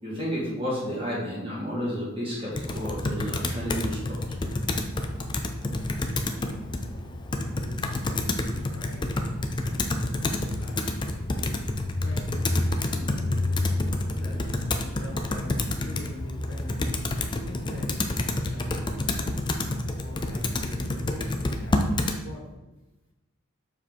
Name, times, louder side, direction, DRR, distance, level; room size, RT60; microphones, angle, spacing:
voice 1, 0.0-4.2 10.2-10.4, equal, 25° right, -6 dB, 2.2 m, -31 dB
Computer keyboard, 2.5-22.2, left 2 dB, 20° left, 0.4 m, -28 dB
voice 2, 7.4-9.1 9.6-13.6 14.2-14.4 14.7-16.8 17.4-21.2 21.6-22.4, left 1 dB, 85° left, -2 dB, 1.7 m, -45 dB
6.9 x 4.6 x 3.6 m, 1.0 s
head